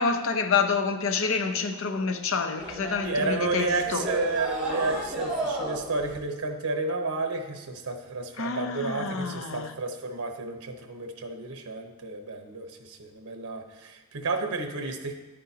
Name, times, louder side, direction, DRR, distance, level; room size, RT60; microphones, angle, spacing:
voice 1, 0.0-4.1 8.4-9.7, left 5 dB, 60° left, 0.7 m, -28 dB
sound 1, 2.6-6.2, right 1 dB, 5° right, 2.5 m, -33 dB
voice 2, 3.0-15.1, right 3 dB, 85° right, 1.0 m, -31 dB
10.5 x 8.6 x 2.8 m
head